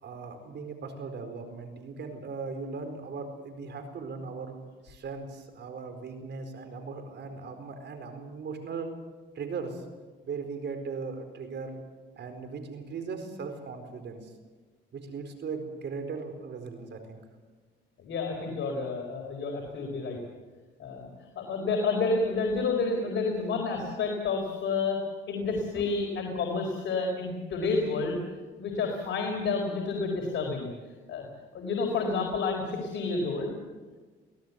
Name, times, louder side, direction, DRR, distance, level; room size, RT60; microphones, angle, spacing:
voice 1, 0.0-4.5 4.8-8.9 9.3-9.8 10.2-11.8 12.2-14.3 14.9-17.2, right 4 dB, 60° right, 7 dB, 4.5 m, -38 dB
voice 2, 18.0-20.2 20.8-28.2 28.6-30.7 31.1-31.3 31.5-33.5, left 4 dB, 65° left, 1 dB, 4.3 m, -30 dB
24.0 x 17.0 x 8.3 m, 1.4 s
cardioid pair, 90°, 20 cm